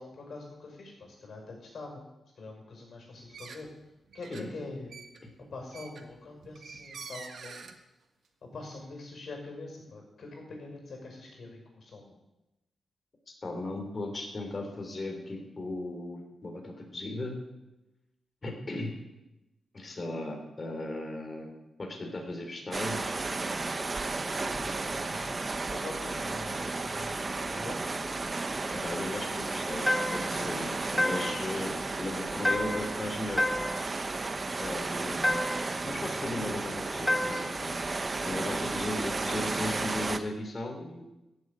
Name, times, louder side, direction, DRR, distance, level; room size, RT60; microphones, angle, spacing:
voice 1, 0.0-2.1 2.3-3.7 4.1-4.9 5.5-7.7 8.4-12.2 24.4-28.0, left 3 dB, 55° left, 1 dB, 5.9 m, -44 dB
sound 1, 3.2-7.7, right 5 dB, 65° right, 1.5 m, -46 dB
voice 2, 13.4-17.4 18.4-18.9 19.7-23.2 28.7-33.5 34.6-35.3 35.8-37.7 38.2-41.1, left 2 dB, 35° left, 2 dB, 3.3 m, -36 dB
sound 2, 22.7-40.2, right 3 dB, 30° right, 0.9 m, -33 dB
sound 3, 29.9-30.4 31.0-31.5 32.4-33.0 33.4-33.9 35.2-35.8 37.1-37.6, left 1 dB, 10° left, 1.0 m, -29 dB
15.5 x 7.7 x 8.7 m, 0.97 s
wide cardioid pair, 120°, 0 cm